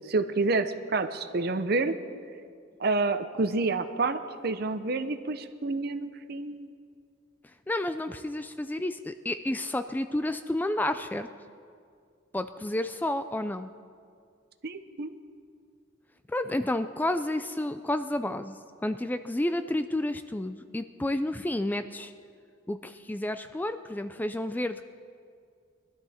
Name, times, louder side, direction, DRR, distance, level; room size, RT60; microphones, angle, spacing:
voice 1, 0.0-1.9 2.8-6.7 14.6-15.2, right 3 dB, 55° right, 10 dB, 0.7 m, -28 dB
voice 2, 7.7-11.3 12.3-13.7 16.3-22.1 22.7-24.8, left 1 dB, 10° left, 10 dB, 0.3 m, -30 dB
21.5 x 12.5 x 4.3 m, 2.2 s
head